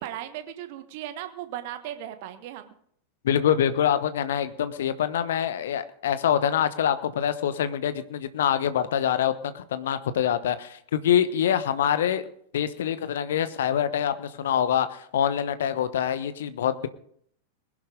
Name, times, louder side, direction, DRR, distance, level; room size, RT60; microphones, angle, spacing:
voice 1, 0.0-2.7, right 12 dB, 50° right, 10 dB, 1.4 m, -37 dB
voice 2, 3.2-12.3 12.5-16.9, left 9 dB, 60° left, 13 dB, 1.0 m, -25 dB
20.5 x 11.0 x 3.8 m, 0.64 s
figure-of-eight pair, 90°, 0 cm